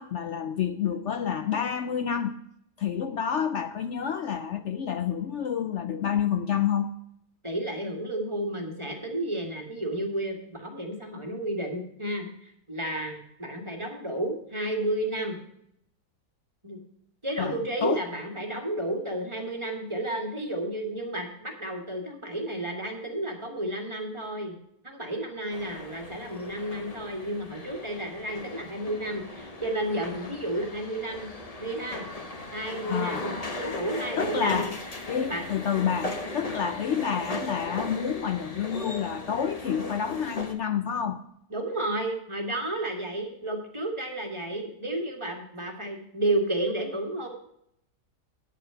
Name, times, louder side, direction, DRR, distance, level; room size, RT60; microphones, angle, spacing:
voice 1, 0.0-2.4 2.8-6.9 17.4-18.0 32.9-33.2 34.2-34.7 35.1-41.2, left 8 dB, 65° left, 9 dB, 0.7 m, -29 dB
voice 2, 7.4-15.4 16.6-16.8 17.2-24.5 24.8-31.3 31.6-32.0 32.5-34.7 35.3-35.4 41.5-47.3, right 1 dB, 20° right, 2 dB, 1.7 m, -32 dB
sound 1, 25.5-40.5, left 2 dB, 25° left, 1.0 m, -37 dB
9.3 x 8.4 x 5.6 m, 0.73 s
omnidirectional pair, 1.7 m